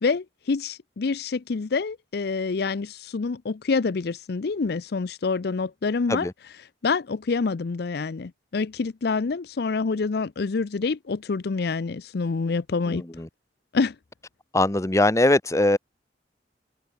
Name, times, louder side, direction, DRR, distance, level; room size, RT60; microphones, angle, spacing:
voice 1, 0.0-6.3 6.8-13.0 13.7-14.0, left 4 dB, 60° left, 0.5 m, -27 dB
voice 2, 12.9-13.3 14.5-15.8, left 2 dB, 15° left, 0.8 m, -21 dB
open air
head